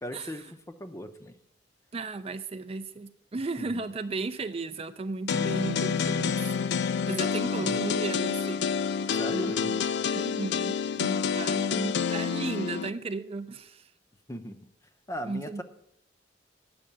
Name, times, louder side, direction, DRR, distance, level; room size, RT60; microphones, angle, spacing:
voice 1, 0.0-1.4 3.6-3.8 7.2-7.8 9.1-9.7 14.3-14.6 15.1-15.6, equal, 15° left, 9 dB, 0.6 m, -38 dB
voice 2, 1.9-6.4 6.7-8.7 9.3-9.8 10.1-13.9 15.2-15.6, right 3 dB, 30° right, 10 dB, 0.4 m, -35 dB
sound 1, 5.3-12.9, left 6 dB, 60° left, 0.4 m, -28 dB
8.8 x 6.4 x 8.4 m, 0.78 s
head